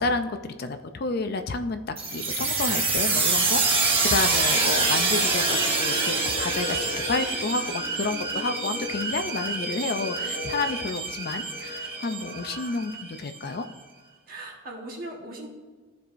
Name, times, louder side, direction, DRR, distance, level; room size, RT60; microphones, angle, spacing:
voice 1, 0.0-13.6, left 3 dB, 50° left, 8 dB, 0.4 m, -30 dB
sound 1, 2.0-13.4, right 3 dB, 30° right, 1.3 m, -26 dB
voice 2, 7.2-7.6 9.1-9.2 14.3-15.5, right 1 dB, 45° right, 0 dB, 1.5 m, -40 dB
14.0 x 4.7 x 2.6 m, 1.4 s
head